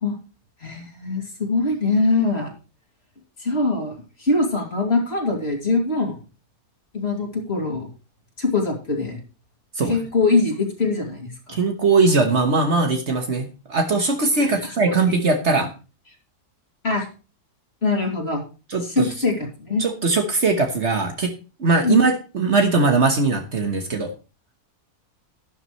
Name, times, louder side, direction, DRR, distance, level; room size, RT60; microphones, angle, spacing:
voice 1, 0.6-2.5 3.4-6.2 6.9-7.9 8.4-9.2 9.8-11.6 14.4-14.9 16.8-17.1 17.8-18.4 18.8-19.8 21.8-22.0, left 3 dB, 40° left, 1 dB, 2.8 m, -23 dB
voice 2, 11.5-15.7 18.7-19.1 19.8-21.3 21.6-24.1, right 3 dB, 50° right, 4 dB, 1.5 m, -20 dB
12.0 x 11.0 x 3.2 m, 0.33 s
omnidirectional pair, 1.6 m